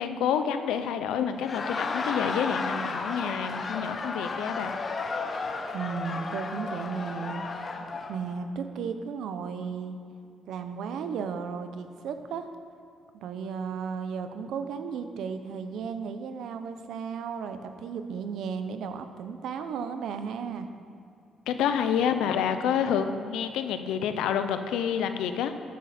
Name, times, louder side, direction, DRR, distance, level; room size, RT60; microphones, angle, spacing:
voice 1, 0.0-4.7 21.5-25.5, left 8 dB, 90° left, 9 dB, 0.7 m, -28 dB
Laughter, 1.3-8.2, left 4 dB, 40° left, 1.0 m, -33 dB
voice 2, 5.7-7.4 8.1-10.0 10.5-12.5 13.1-20.7, right 6 dB, 80° right, 8 dB, 0.8 m, -34 dB
13.0 x 9.4 x 4.4 m, 2.5 s
cardioid pair, 90°, 0 cm